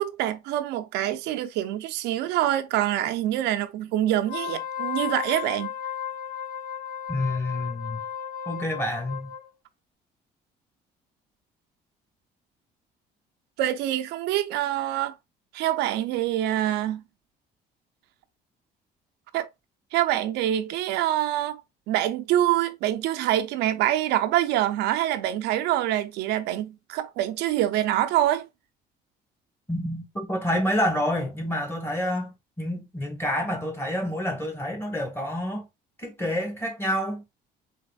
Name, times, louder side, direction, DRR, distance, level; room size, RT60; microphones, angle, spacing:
voice 1, 0.0-5.7 13.6-15.1 15.5-17.0 19.3-19.5 19.9-28.5, right 13 dB, 85° right, 0.5 m, -25 dB
Wind instrument woodwind instrument, 4.2-9.5, left 9 dB, 55° left, 0.9 m, -34 dB
voice 2, 7.1-8.0 8.4-9.3 29.7-35.7 36.0-37.2, left 1 dB, 15° left, 1.6 m, -28 dB
4.1 x 3.4 x 2.3 m
cardioid pair, 110°, 17 cm